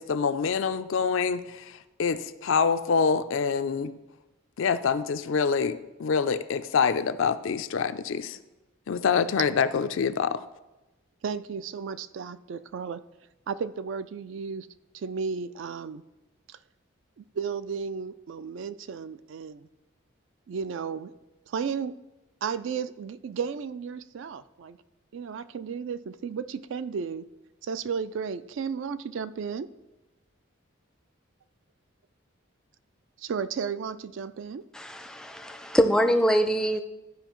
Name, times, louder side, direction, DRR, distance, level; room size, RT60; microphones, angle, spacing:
voice 1, 0.0-3.9 4.6-8.4 8.9-10.4, left 6 dB, 70° left, 11 dB, 0.4 m, -26 dB
voice 2, 11.2-13.0 13.5-14.7 14.9-16.0 16.5-16.6 17.2-19.7 20.5-21.1 21.5-22.0 22.4-24.8 25.1-27.3 27.6-29.7 33.2-34.6, right 6 dB, 65° right, 14 dB, 0.3 m, -34 dB
voice 3, 34.7-36.8, equal, 5° left, 6 dB, 0.4 m, -24 dB
13.5 x 4.9 x 3.0 m, 1.0 s
head